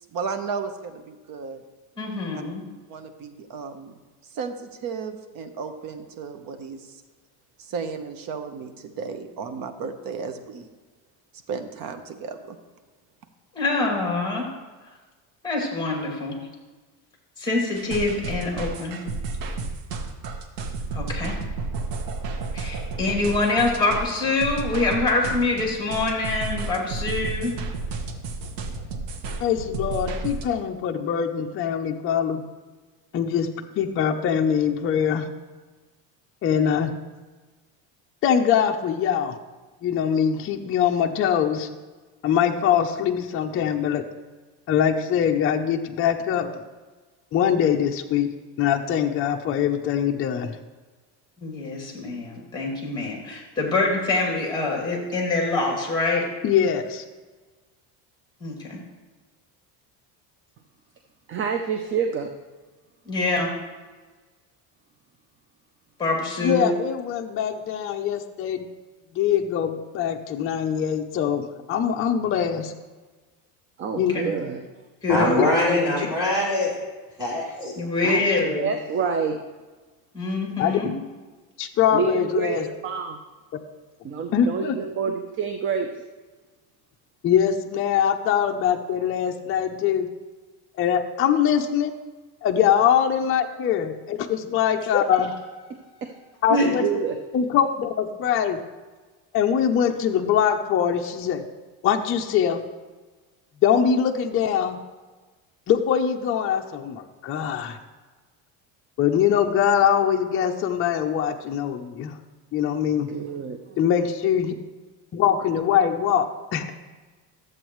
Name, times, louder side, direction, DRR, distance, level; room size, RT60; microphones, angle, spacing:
voice 1, 0.1-1.6 2.3-2.4 2.9-3.9 4.2-7.0 7.6-10.7 11.5-12.6, right 5 dB, 50° right, 8 dB, 1.0 m, -34 dB
voice 2, 2.0-2.6 13.5-14.5 15.4-16.4 17.4-19.0 20.9-21.4 22.5-27.5 51.4-56.3 58.4-58.8 63.0-63.5 66.0-66.7 73.9-74.3 75.0-76.1 77.8-78.7 80.1-80.9 95.1-95.3 96.5-96.7, left 2 dB, 10° left, 0 dB, 2.3 m, -25 dB
sound 1, 17.7-30.4, right 3 dB, 75° right, 1.2 m, -32 dB
voice 3, 29.4-32.4 33.1-33.5 33.8-35.3 36.4-36.9 38.2-39.4 39.8-41.7 42.2-44.0 44.7-46.6 47.3-48.3 48.6-50.6 56.4-57.0 66.4-68.7 69.1-72.7 74.0-74.1 75.1-75.5 76.0-76.1 80.6-80.9 81.6-82.7 84.3-84.8 87.2-90.1 90.8-91.9 92.4-95.3 96.4-96.8 97.3-98.6 99.3-101.4 101.8-102.6 103.6-104.8 105.7-107.8 109.0-112.2 112.5-113.1 113.8-114.5 115.1-116.7, left 8 dB, 30° left, 3 dB, 0.5 m, -23 dB
voice 4, 61.3-62.3 73.8-74.6 78.0-78.3 78.6-79.4 81.9-83.2 84.0-85.9 96.0-96.1 96.8-97.2 113.0-113.6, right 6 dB, 30° right, 5 dB, 0.5 m, -27 dB
voice 5, 75.1-76.7 77.2-77.7, left 1 dB, 10° right, -6 dB, 3.1 m, -23 dB
13.0 x 7.9 x 3.1 m, 1.3 s
cardioid pair, 145°, 43 cm